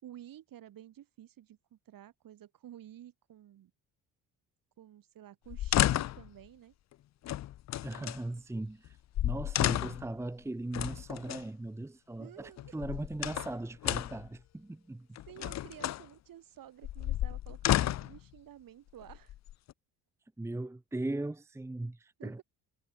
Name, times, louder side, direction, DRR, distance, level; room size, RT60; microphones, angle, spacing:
voice 1, 0.0-3.7 4.8-6.7 12.2-12.7 15.3-19.3 22.2-22.4, right 11 dB, 60° right, 4.8 m, -52 dB
sound 1, 5.5-6.3 7.2-8.2 8.9-9.0 9.1-10.1 10.7-11.4 12.6-13.5 13.8-14.3 15.2-16.0 16.8-18.2 19.0-19.7, left 13 dB, 45° left, 0.6 m, -32 dB
voice 2, 7.8-9.0 9.2-15.1 20.4-22.4, right 2 dB, 5° right, 0.9 m, -39 dB
supercardioid pair, 85°, 38 cm